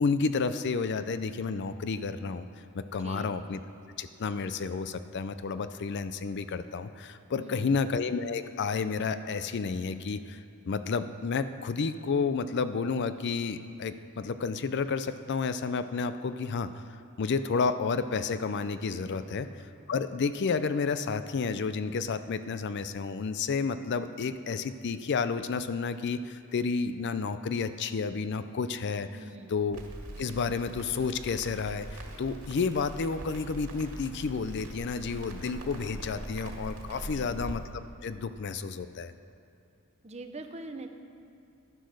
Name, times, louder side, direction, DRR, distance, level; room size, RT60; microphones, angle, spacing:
voice 1, 0.0-2.5 2.7-3.6 4.0-10.4 10.7-16.8 17.2-19.5 19.9-29.1 29.5-29.8 30.2-37.6 38.0-39.1, left 5 dB, 55° left, 12 dB, 0.4 m, -31 dB
voice 2, 3.0-3.3 7.4-7.8 19.2-19.4 29.1-29.6 37.0-37.4 40.0-40.9, right 2 dB, 30° right, 6 dB, 0.8 m, -44 dB
Crackle, 29.7-37.5, right 1 dB, 75° right, 1.9 m, -42 dB
11.5 x 10.5 x 6.4 m, 2.5 s
head